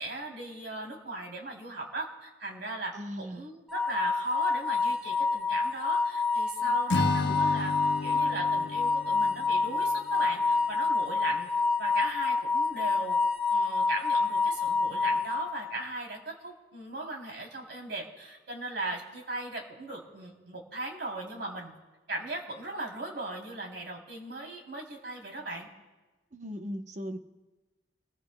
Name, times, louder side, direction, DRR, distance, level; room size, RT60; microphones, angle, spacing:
voice 1, 0.0-7.7 8.0-11.5 11.8-13.2 13.5-21.8 22.1-25.7, right 2 dB, 75° right, 0 dB, 3.3 m, -38 dB
voice 2, 2.9-3.5 6.6-6.8 7.0-7.4 26.3-27.2, equal, 45° right, 6 dB, 0.9 m, -39 dB
sound 1, 3.7-15.9, left 4 dB, 5° right, 0.9 m, -28 dB
Acoustic guitar / Strum, 6.9-10.2, left 3 dB, 85° left, 0.9 m, -33 dB
29.5 x 21.0 x 2.3 m, 1.2 s
head